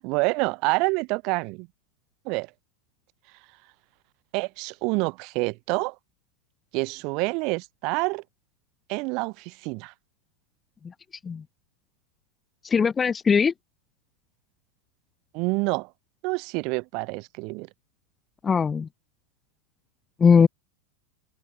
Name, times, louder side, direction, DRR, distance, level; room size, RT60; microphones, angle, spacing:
voice 1, 0.0-1.7 2.3-2.5 4.3-5.9 6.7-8.2 8.9-9.9 15.3-15.9 16.2-17.7, right 28 dB, 45° right, 2.4 m, -27 dB
voice 2, 12.6-13.5 18.4-18.9 20.2-20.5, left 6 dB, 20° left, 0.6 m, -19 dB
figure-of-eight pair, 90°, 0 cm